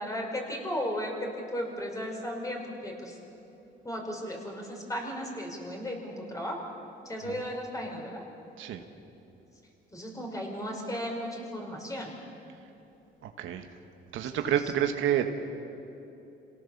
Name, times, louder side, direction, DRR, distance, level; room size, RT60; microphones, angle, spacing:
voice 1, 0.0-3.1 3.8-6.6 7.1-8.2 9.9-12.1 14.3-14.4, equal, 15° left, 1 dB, 5.4 m, -35 dB
voice 2, 13.2-13.7 14.1-15.3, right 10 dB, 85° right, 6 dB, 1.5 m, -29 dB
27.0 x 18.0 x 7.3 m, 2.9 s
cardioid pair, 90°, 20 cm